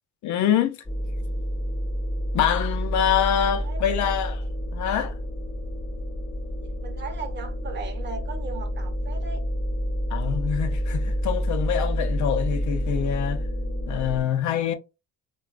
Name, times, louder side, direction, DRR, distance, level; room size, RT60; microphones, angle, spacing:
voice 1, 0.2-0.8 2.3-4.4 4.7-5.1 10.1-13.5 13.9-14.7, left 9 dB, 60° left, 0.5 m, -25 dB
sound 1, 0.8-14.2, equal, 10° left, 0.6 m, -28 dB
voice 2, 3.6-4.1 6.6-9.4, right 5 dB, 35° right, 0.7 m, -38 dB
3.9 x 2.3 x 2.4 m
cardioid pair, 170°, 33 cm